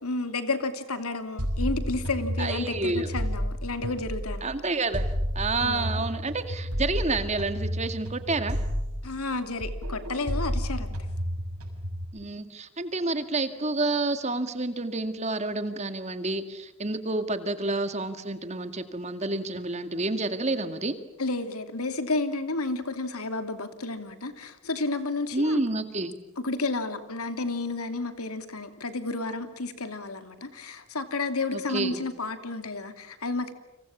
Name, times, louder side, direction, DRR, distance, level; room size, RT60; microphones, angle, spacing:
voice 1, 0.0-4.5 5.6-5.9 9.0-10.9 21.2-25.6 26.4-33.5, left 3 dB, 80° left, 9 dB, 2.9 m, -31 dB
sound 1, 1.4-4.5 4.9-9.3 9.6-12.0, equal, 80° right, 6.7 m, -31 dB
voice 2, 2.4-3.1 4.4-5.0 5.4-8.6 12.1-21.0 25.3-26.2 31.5-32.0, right 2 dB, 30° right, 9 dB, 2.0 m, -29 dB
30.0 x 26.5 x 7.3 m, 0.91 s
head